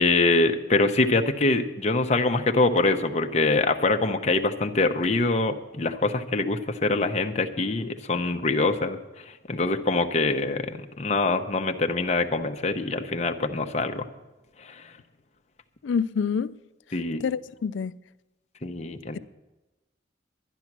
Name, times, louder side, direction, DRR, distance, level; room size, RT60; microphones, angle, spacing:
voice 1, 0.0-14.1 14.6-14.8 16.9-17.2 18.6-19.2, left 3 dB, 35° left, 0.7 m, -24 dB
voice 2, 15.8-16.6 17.2-18.0, left 6 dB, 85° left, 0.4 m, -27 dB
11.5 x 11.0 x 6.0 m
head